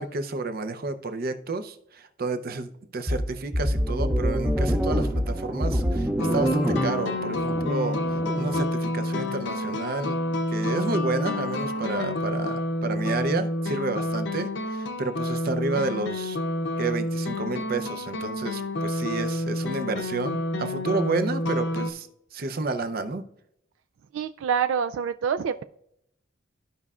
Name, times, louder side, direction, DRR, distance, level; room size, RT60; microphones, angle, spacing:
voice 1, 0.0-10.2 10.5-16.4 16.8-23.2, right 3 dB, 50° right, 9 dB, 0.6 m, -30 dB
sound 1, 3.1-8.7, equal, 10° right, 0.6 m, -26 dB
sound 2, 6.2-21.9, left 1 dB, 65° left, 0.7 m, -29 dB
voice 2, 24.1-25.6, right 7 dB, 80° right, 10 dB, 0.3 m, -26 dB
14.0 x 5.5 x 2.4 m, 0.76 s
head